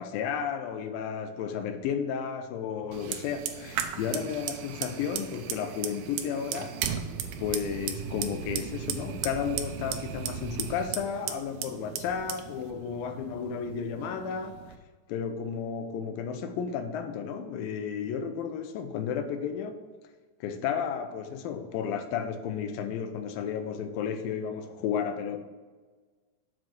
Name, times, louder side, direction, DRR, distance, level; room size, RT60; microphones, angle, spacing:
voice 1, 0.0-7.0 7.4-14.8 15.1-19.8 20.4-25.4, left 7 dB, 80° left, 2.4 m, -33 dB
sound 1, 2.7-13.5, left 3 dB, 55° left, 1.6 m, -54 dB
Fire, 2.9-14.8, right 9 dB, 85° right, 2.5 m, -36 dB
7.4 x 4.6 x 6.2 m
omnidirectional pair, 4.1 m